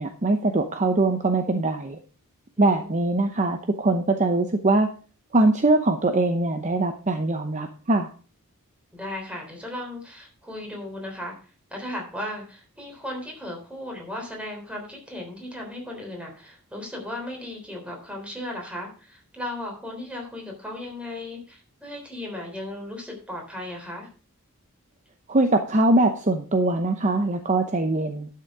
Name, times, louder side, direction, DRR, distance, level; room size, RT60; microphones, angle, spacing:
voice 1, 0.0-2.0 2.6-4.9 5.3-8.1 25.3-28.3, right 2 dB, 35° right, 6 dB, 0.8 m, -22 dB
voice 2, 2.6-2.9 8.9-11.3 11.7-24.1, left 1 dB, 5° right, 1 dB, 3.5 m, -36 dB
11.5 x 6.7 x 4.8 m, 0.39 s
head